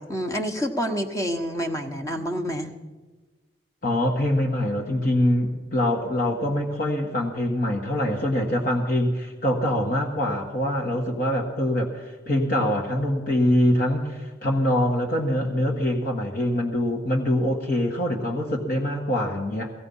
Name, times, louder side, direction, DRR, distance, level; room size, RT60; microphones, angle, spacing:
voice 1, 0.0-2.7, equal, 20° left, 5 dB, 1.2 m, -28 dB
voice 2, 3.8-19.7, left 1 dB, 50° left, 0 dB, 1.5 m, -24 dB
16.5 x 16.0 x 5.5 m, 1.3 s
head